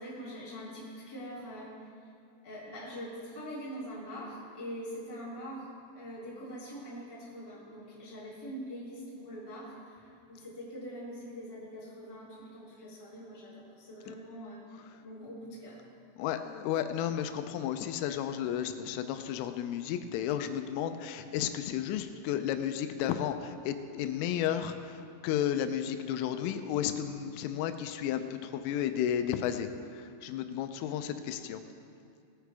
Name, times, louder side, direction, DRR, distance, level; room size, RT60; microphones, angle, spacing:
voice 1, 0.0-1.9 2.4-5.7 5.9-14.6 15.0-15.8, equal, 10° left, -8 dB, 1.7 m, -43 dB
voice 2, 16.2-31.6, left 10 dB, 85° left, 9 dB, 3.2 m, -33 dB
19.0 x 9.7 x 3.4 m, 2.4 s
omnidirectional pair, 5.7 m